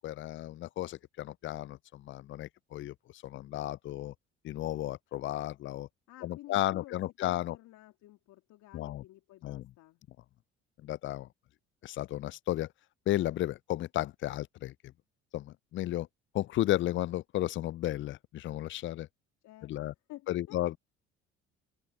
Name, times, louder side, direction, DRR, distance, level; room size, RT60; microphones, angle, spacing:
voice 1, 0.0-2.9 3.2-4.1 4.4-5.9 6.2-7.6 8.7-9.0 9.4-9.7 10.8-11.3 11.8-12.7 13.1-14.7 15.3-16.1 16.3-19.1 19.6-19.9 20.3-20.7, left 14 dB, 40° left, 0.4 m, -33 dB
voice 2, 6.1-7.0 7.2-10.0 19.4-20.6, left 16 dB, 65° left, 3.2 m, -52 dB
open air
hypercardioid pair, 60°, 31 cm